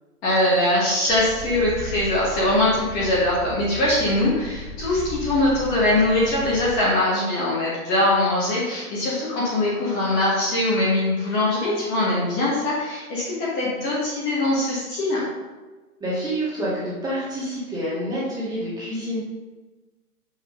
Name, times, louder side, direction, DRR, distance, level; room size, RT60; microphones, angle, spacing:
voice 1, 0.2-15.3, left 1 dB, 20° left, -7 dB, 1.5 m, -22 dB
sound 1, 1.1-6.7, equal, 45° left, 0.9 m, -36 dB
voice 2, 16.0-19.2, equal, 10° right, -9 dB, 1.8 m, -28 dB
5.7 x 5.7 x 3.8 m, 1.2 s
hypercardioid pair, 145°, 45 cm